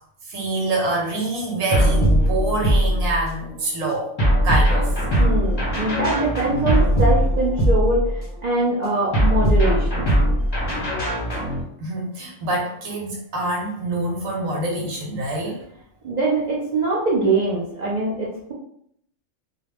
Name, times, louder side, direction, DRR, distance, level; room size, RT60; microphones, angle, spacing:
voice 1, 0.3-4.1 4.4-5.0 11.8-15.6, right 2 dB, 75° right, -1 dB, 1.3 m, -25 dB
sound 1, 1.7-3.4 4.2-8.4 9.1-11.6, equal, 25° left, 0.7 m, -20 dB
voice 2, 5.2-10.1 16.0-18.5, right 2 dB, 55° right, -6 dB, 0.5 m, -23 dB
2.4 x 2.2 x 3.3 m, 0.68 s
omnidirectional pair, 1.4 m